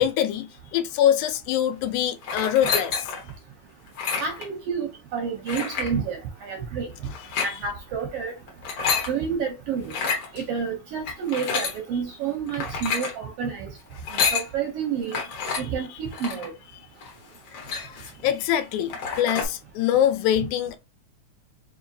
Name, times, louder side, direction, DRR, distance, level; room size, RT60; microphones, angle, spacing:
voice 1, 0.0-3.0 7.3-7.4 17.9-18.0 18.2-20.8, left 10 dB, 85° left, 2.0 m, -24 dB
sound 1, 2.2-3.3 3.9-4.5 5.5-5.9 7.1-7.5 8.5-9.1 9.8-10.3 11.1-11.8 12.5-13.1 13.9-14.5 15.1-15.6 16.1-16.5 17.0-17.1 17.3-18.2 18.6-18.7 18.9-19.5, left 5 dB, 60° left, 1.9 m, -28 dB
voice 2, 4.2-6.9 7.4-8.3 9.1-9.9 10.3-13.7 14.3-15.2 15.6-16.5, right 6 dB, 75° right, 1.4 m, -29 dB
4.8 x 2.9 x 2.7 m
omnidirectional pair, 3.5 m